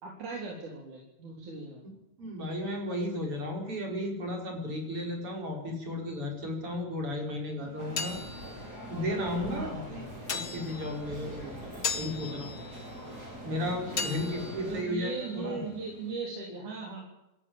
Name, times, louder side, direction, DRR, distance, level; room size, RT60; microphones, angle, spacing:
voice 1, 0.0-1.8 9.4-10.1 13.8-17.0, right 4 dB, 80° right, -1 dB, 5.1 m, -39 dB
voice 2, 2.2-8.2 8.9-12.6 13.4-15.6, left 1 dB, 45° right, 2 dB, 5.7 m, -34 dB
sound 1, 7.6-16.1, left 5 dB, 45° left, 1.1 m, -40 dB
sound 2, 7.8-14.8, right 1 dB, 30° right, 5.4 m, -43 dB
27.0 x 14.5 x 8.8 m, 0.91 s
omnidirectional pair, 3.4 m